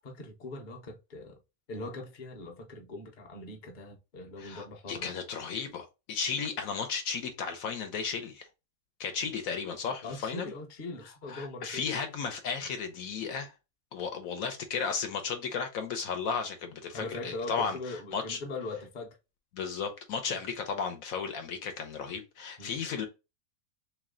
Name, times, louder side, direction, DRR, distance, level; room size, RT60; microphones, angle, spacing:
voice 1, 0.0-1.4 1.7-5.1 10.0-11.9 16.9-19.2 20.3-20.4 22.6-22.7, left 2 dB, 40° left, 0.8 m, -41 dB
voice 2, 4.4-8.4 9.0-10.5 11.3-13.5 13.9-17.8 18.1-18.4 19.5-23.1, left 6 dB, 70° left, 1.1 m, -34 dB
3.2 x 3.0 x 3.6 m
omnidirectional pair, 1.5 m